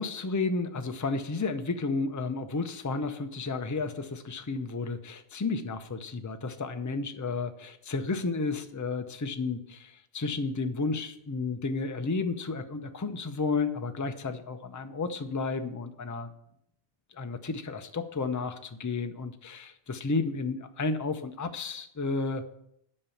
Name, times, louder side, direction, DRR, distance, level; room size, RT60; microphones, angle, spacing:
voice 1, 0.0-16.3 17.1-22.5, left 3 dB, 20° left, 7 dB, 0.5 m, -32 dB
8.6 x 5.4 x 7.1 m, 0.75 s
omnidirectional pair, 1.1 m